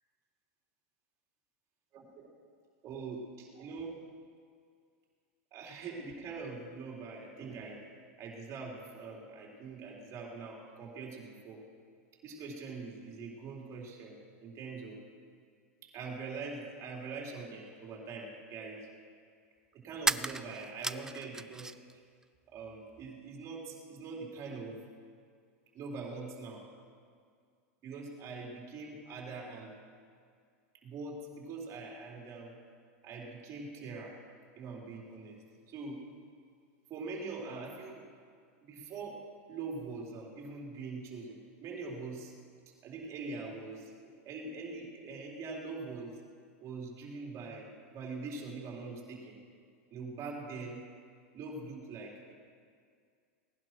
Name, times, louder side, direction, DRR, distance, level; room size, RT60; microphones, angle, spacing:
voice 1, 1.9-2.3 2.8-4.0 5.5-7.8 8.2-11.6 12.2-15.0 15.8-18.9 19.7-21.7 22.5-24.8 25.7-26.6 27.8-29.7 30.8-32.6 33.0-34.2 34.6-35.4 35.7-36.0 36.9-38.0 38.6-42.3 42.8-46.2 46.6-49.4 49.9-50.8 51.3-52.3, right 4 dB, 40° right, -1 dB, 4.0 m, -43 dB
sound 1, 17.7-17.8 20.0-21.9 22.2-23.1, right 3 dB, 5° right, 0.4 m, -35 dB
18.5 x 11.0 x 6.0 m, 2.1 s
hypercardioid pair, 120°, 8 cm